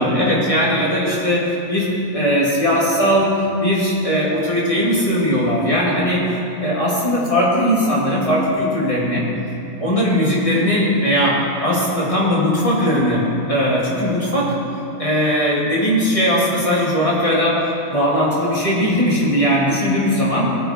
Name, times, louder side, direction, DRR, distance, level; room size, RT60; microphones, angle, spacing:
voice 1, 0.0-6.2 6.6-9.3 9.8-14.5 15.0-20.4, equal, 25° left, -6 dB, 2.9 m, -19 dB
18.5 x 8.0 x 4.6 m, 2.7 s
omnidirectional pair, 1.5 m